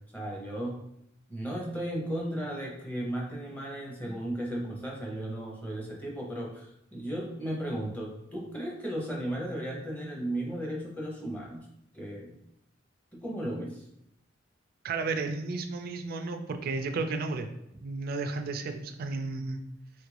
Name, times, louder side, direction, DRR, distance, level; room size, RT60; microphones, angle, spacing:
voice 1, 0.1-0.8 1.3-11.7 11.9-12.3 13.1-13.8, right 1 dB, 10° left, -3 dB, 0.6 m, -35 dB
voice 2, 14.8-17.5 17.8-19.6, right 3 dB, 50° right, 6 dB, 0.3 m, -33 dB
3.0 x 2.4 x 3.2 m, 0.79 s
head